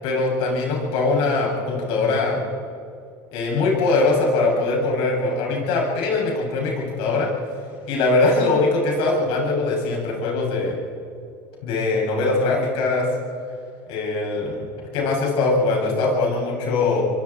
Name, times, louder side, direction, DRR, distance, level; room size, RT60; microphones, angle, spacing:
voice 1, 0.0-2.4 3.3-7.3 7.9-10.8 11.6-13.1 13.9-17.0, left 3 dB, 70° left, -2 dB, 7.6 m, -22 dB
27.0 x 23.5 x 4.5 m, 2.4 s
supercardioid pair, 95°, 10 cm